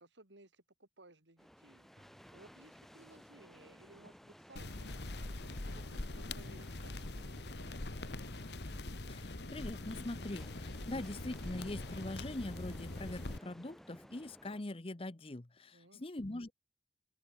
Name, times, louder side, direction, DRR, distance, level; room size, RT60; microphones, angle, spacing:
voice 1, 0.0-1.9 2.3-5.0 5.7-7.7 15.7-16.0, right 2 dB, 85° right, 3.6 m, -60 dB
sound 1, 1.0-1.3 2.0-2.9 3.8-10.5, right 1 dB, 45° right, 3.3 m, -68 dB
sound 2, 1.4-14.6, equal, ahead, 2.3 m, -59 dB
sound 3, 4.6-13.4, left 2 dB, 65° left, 1.6 m, -43 dB
voice 2, 9.1-16.5, left 1 dB, 30° left, 0.9 m, -43 dB
open air
head